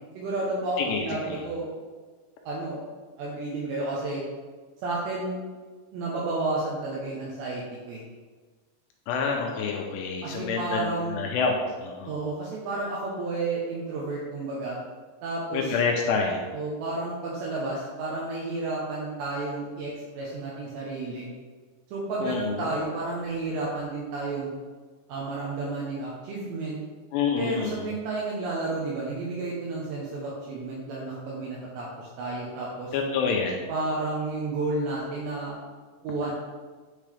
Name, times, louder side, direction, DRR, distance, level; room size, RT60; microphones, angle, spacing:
voice 1, 0.1-1.7 2.5-2.8 3.2-4.2 4.8-5.4 5.9-8.0 10.2-11.2 12.1-14.8 15.2-15.8 16.5-21.3 21.9-24.5 25.1-26.8 27.4-32.9 33.7-35.6 36.0-36.3, right 2 dB, 80° right, -4 dB, 2.9 m, -31 dB
voice 2, 0.8-1.4 9.1-12.1 15.5-16.4 22.2-22.7 27.1-28.0 32.9-33.7, left 5 dB, 85° left, 1 dB, 2.5 m, -28 dB
9.7 x 3.8 x 3.3 m, 1.4 s
omnidirectional pair, 5.4 m